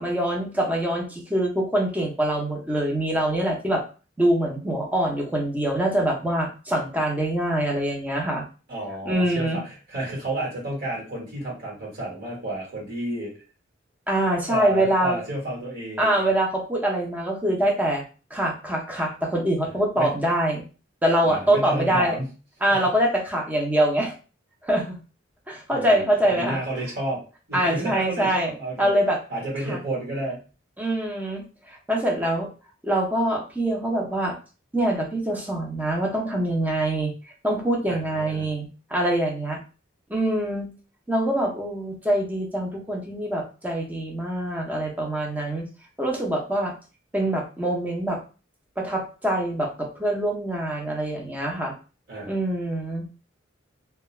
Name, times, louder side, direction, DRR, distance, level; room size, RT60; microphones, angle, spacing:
voice 1, 0.0-3.8 4.2-8.4 9.0-9.6 14.1-15.2 16.0-18.0 18.3-20.6 21.0-22.2 22.6-24.1 24.6-25.0 25.5-26.6 27.5-29.2 29.7-29.8 30.8-32.5 32.8-34.3 34.7-39.6 40.1-40.7 41.1-45.7 46.0-46.7 47.1-48.2 48.8-51.7 52.3-53.0, right 1 dB, 10° right, 0 dB, 0.6 m, -24 dB
voice 2, 8.7-13.3 14.4-16.1 19.9-20.2 21.2-22.3 22.7-22.9 25.7-27.2 27.5-28.9 29.3-30.4 37.9-38.5 52.1-52.4, right 1 dB, 55° right, -4 dB, 1.2 m, -31 dB
2.3 x 2.2 x 3.1 m, 0.35 s
head